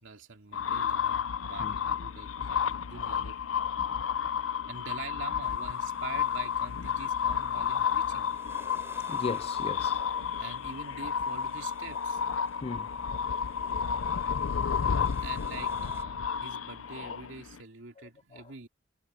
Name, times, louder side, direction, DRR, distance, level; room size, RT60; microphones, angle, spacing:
voice 1, 0.0-3.4 4.7-8.4 10.4-12.2 15.2-18.7, right 4 dB, 75° right, 2.6 m, -45 dB
sound 1, 0.5-17.6, left 7 dB, 90° left, 0.6 m, -31 dB
sound 2, 5.4-16.0, right 2 dB, 15° right, 7.6 m, -57 dB
voice 2, 9.1-10.5 12.6-13.0 18.0-18.4, left 4 dB, 30° left, 0.4 m, -39 dB
head